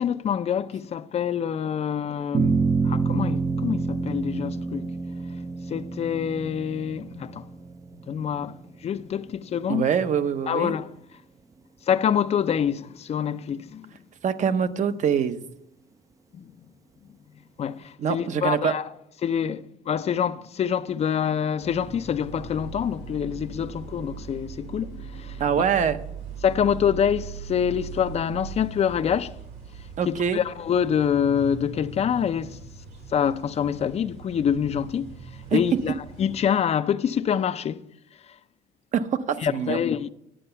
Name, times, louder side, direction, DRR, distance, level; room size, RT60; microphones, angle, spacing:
voice 1, 0.0-2.6 2.8-4.9 5.7-7.4 8.1-9.9 10.5-10.9 11.9-13.9 16.3-16.5 17.6-18.9 19.2-25.4 26.4-29.4 30.1-32.6 33.1-35.2 35.5-37.8 39.4-40.1, left 8 dB, 40° left, 0.5 m, -26 dB
sound 1, 2.3-8.9, right 4 dB, 20° right, 0.4 m, -27 dB
voice 2, 9.7-10.7 14.2-15.4 18.0-18.7 25.4-26.0 30.0-30.4 35.5-35.8 38.9-39.8, right 7 dB, 45° right, 0.7 m, -24 dB
sound 2, 21.6-36.4, right 5 dB, 80° right, 4.1 m, -40 dB
10.0 x 7.8 x 5.6 m
cardioid pair, 110°, 17 cm